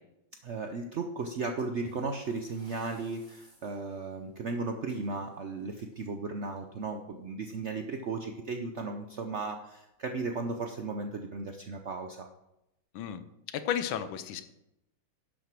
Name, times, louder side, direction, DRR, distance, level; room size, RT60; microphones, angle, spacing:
voice 1, 0.4-12.3, right 3 dB, 75° right, 4 dB, 0.6 m, -35 dB
sound 1, 1.6-7.0 8.2-8.4 8.7-8.8 9.4-9.5 10.2-10.5, right 1 dB, 15° right, 3.9 m, -60 dB
voice 2, 13.5-14.4, left 9 dB, 80° left, 11 dB, 1.5 m, -33 dB
11.0 x 6.3 x 6.0 m, 0.87 s
omnidirectional pair, 2.2 m